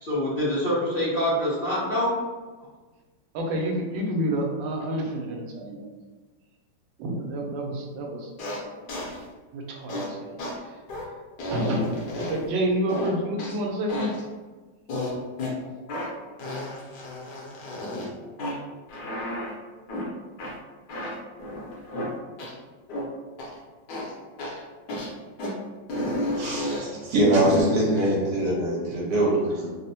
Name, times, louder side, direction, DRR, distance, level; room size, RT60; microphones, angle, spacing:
voice 1, 0.0-2.1, equal, 50° left, -12 dB, 0.6 m, -25 dB
voice 2, 3.3-5.9 7.0-8.6 9.5-10.3 11.5-14.1 15.0-15.1, right 1 dB, 90° right, 0 dB, 1.3 m, -29 dB
sound 1, 8.4-8.6 8.9-9.2 9.9-10.1 10.4-10.5 10.9-11.0 11.4-12.5 12.9-13.6 13.9-14.2 14.9-15.5 15.9-16.1 16.4-18.1 18.4-18.6 18.9-19.5 19.9-20.1 20.4-20.5 20.9-22.1 22.4-22.5 22.9-23.0 23.4-23.5 23.9-24.1 24.4-24.6 24.9-25.1 25.4-25.5 25.9-26.9 27.4-27.6, left 1 dB, 70° left, 1.3 m, -32 dB
voice 3, 26.3-29.7, right 1 dB, 65° right, -5 dB, 1.4 m, -23 dB
3.5 x 2.0 x 2.7 m, 1.3 s
omnidirectional pair, 2.0 m